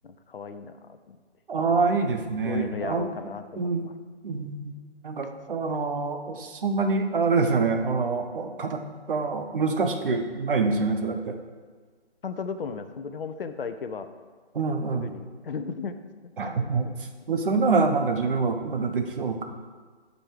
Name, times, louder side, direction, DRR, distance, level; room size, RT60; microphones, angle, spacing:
voice 1, 0.0-1.2 2.4-3.9 12.2-14.1 14.9-16.0 16.4-17.0, left 5 dB, 55° left, 9 dB, 0.8 m, -36 dB
voice 2, 1.5-3.1 3.6-3.9 4.2-4.8 5.0-8.8 9.1-11.3 14.5-15.1 16.4-16.9 17.3-19.4, right 4 dB, 50° right, 5 dB, 1.1 m, -26 dB
7.6 x 5.4 x 6.5 m, 1.5 s
figure-of-eight pair, 150°, 33 cm